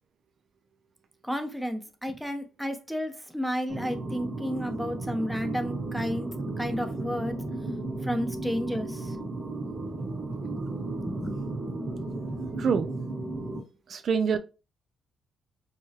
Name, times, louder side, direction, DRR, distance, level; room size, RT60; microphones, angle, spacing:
voice 1, 1.2-7.4 8.0-9.2 10.0-10.1 10.5-11.5, equal, ahead, 0.7 m, -32 dB
sound 1, 3.7-13.6, right 2 dB, 30° right, 1.5 m, -34 dB
voice 2, 12.6-12.9 13.9-14.4, right 6 dB, 55° right, 0.3 m, -25 dB
4.7 x 2.3 x 2.8 m
cardioid pair, 90°, 0 cm